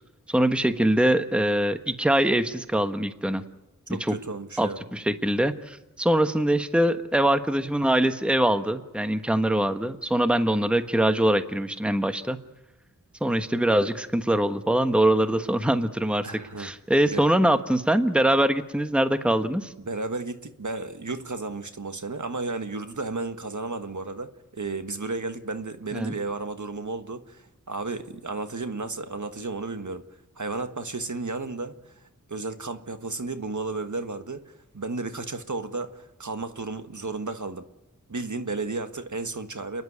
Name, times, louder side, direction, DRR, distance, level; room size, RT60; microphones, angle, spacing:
voice 1, 0.3-3.4 3.9-4.1 4.6-12.4 13.2-16.3 16.6-19.7 25.9-26.1, right 1 dB, 5° right, 1.2 m, -23 dB
voice 2, 3.9-4.8 16.2-16.7 17.1-17.2 19.8-30.0 30.3-32.0 32.3-37.6 38.1-39.8, right 3 dB, 60° right, 1.5 m, -33 dB
29.5 x 11.0 x 9.6 m
wide cardioid pair, 45°, 34 cm